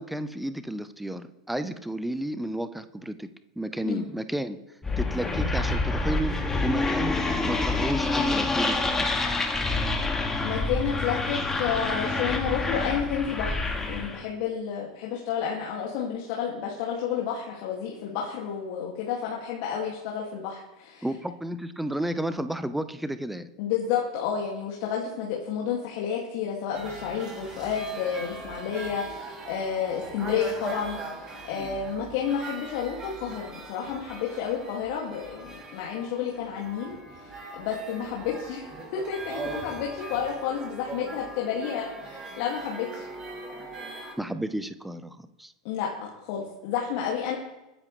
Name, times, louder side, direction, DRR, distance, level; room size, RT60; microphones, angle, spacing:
voice 1, 0.0-3.3 3.6-4.6 5.0-6.3 6.6-7.2 7.5-9.1 21.0-23.5 44.2-45.5, right 1 dB, 5° right, 11 dB, 1.0 m, -32 dB
sound 1, 4.8-14.2, left 3 dB, 15° left, 2.2 m, -27 dB
voice 2, 10.4-21.1 23.6-43.1 45.6-47.4, left 7 dB, 55° left, -2 dB, 2.4 m, -31 dB
sound 2, 26.7-44.1, right 3 dB, 20° right, 4.9 m, -40 dB
22.0 x 9.9 x 3.3 m, 0.99 s
figure-of-eight pair, 85°, 3 cm